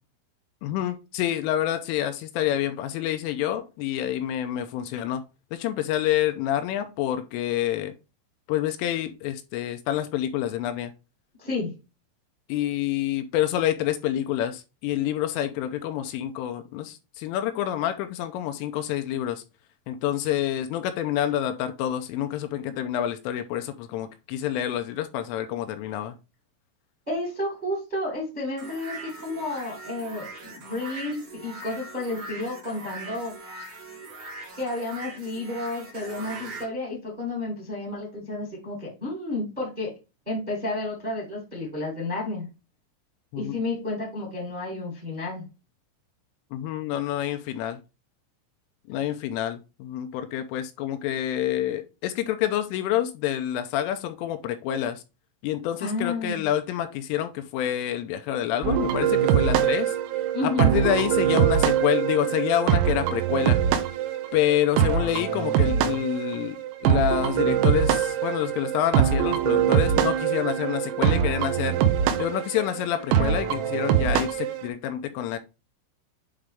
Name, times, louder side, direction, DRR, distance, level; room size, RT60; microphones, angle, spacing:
voice 1, 0.6-5.2 5.5-7.9 8.5-10.9 12.5-19.4 19.9-26.2 43.3-43.6 46.5-47.8 48.9-55.0 55.4-60.0 60.4-63.6 64.3-71.8 72.2-75.4, left 11 dB, 85° left, 8 dB, 3.1 m, -27 dB
voice 2, 11.4-11.7 27.1-33.3 34.6-39.9 40.2-42.5 43.3-45.4 55.8-56.4 60.3-60.7, left 2 dB, 15° right, -3 dB, 1.3 m, -31 dB
sound 1, 28.6-36.7, right 2 dB, 60° right, 1.7 m, -41 dB
sound 2, 58.6-74.7, right 9 dB, 80° right, 3.4 m, -23 dB
8.8 x 3.9 x 3.5 m, 0.28 s
omnidirectional pair, 5.9 m